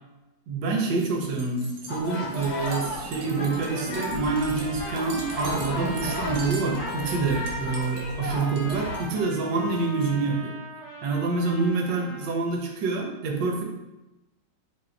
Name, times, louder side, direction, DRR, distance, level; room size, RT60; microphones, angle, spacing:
voice 1, 0.5-10.6 11.0-13.6, right 3 dB, 75° right, 1 dB, 1.4 m, -27 dB
sound 1, 0.9-10.4, right 1 dB, 60° right, 0.9 m, -40 dB
sound 2, 1.9-9.0, left 1 dB, 60° left, 1.1 m, -35 dB
Trumpet, 3.3-12.3, equal, 20° right, 0.9 m, -40 dB
5.7 x 2.8 x 2.4 m, 1.0 s
omnidirectional pair, 2.0 m